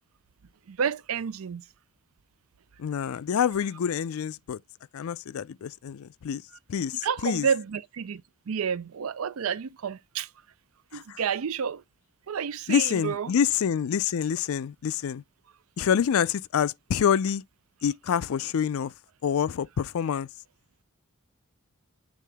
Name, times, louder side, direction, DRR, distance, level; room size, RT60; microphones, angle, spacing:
voice 1, 0.7-1.6 7.0-10.3 10.9-11.8 12.3-13.3, right 7 dB, 75° right, 0.5 m, -30 dB
voice 2, 2.8-4.6 4.9-6.4 6.7-7.5 10.9-11.2 12.7-15.2 15.8-17.4 17.8-18.9 19.2-20.3, left 8 dB, 75° left, 0.4 m, -27 dB
8.4 x 3.7 x 3.4 m
head